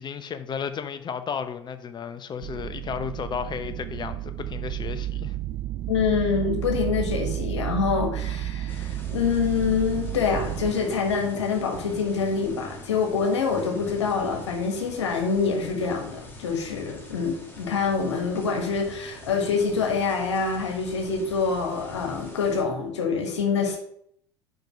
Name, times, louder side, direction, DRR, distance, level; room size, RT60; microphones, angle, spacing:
voice 1, 0.0-5.3, left 7 dB, 30° left, 0.8 m, -33 dB
sound 1, 2.4-10.7, right 13 dB, 45° right, 0.4 m, -31 dB
voice 2, 5.9-23.8, left 5 dB, 85° left, 1.4 m, -26 dB
sound 2, 8.7-22.6, equal, 15° left, 2.2 m, -43 dB
5.4 x 5.2 x 6.3 m
hypercardioid pair, 80°, 14 cm